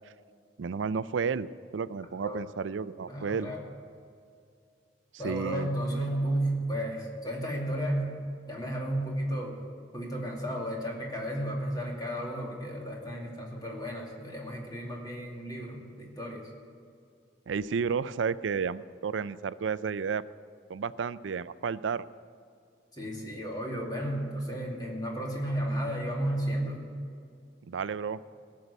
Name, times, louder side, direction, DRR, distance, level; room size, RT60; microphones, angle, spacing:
voice 1, 0.6-1.5 1.7-3.5 5.1-5.7 17.5-20.2 20.7-22.0 27.7-28.2, right 6 dB, 85° right, 16 dB, 0.4 m, -32 dB
voice 2, 3.1-3.6 5.2-8.2 8.5-9.6 9.9-16.5 22.9-26.9, right 1 dB, 20° left, -2 dB, 2.5 m, -33 dB
18.0 x 6.7 x 8.2 m, 2.3 s
head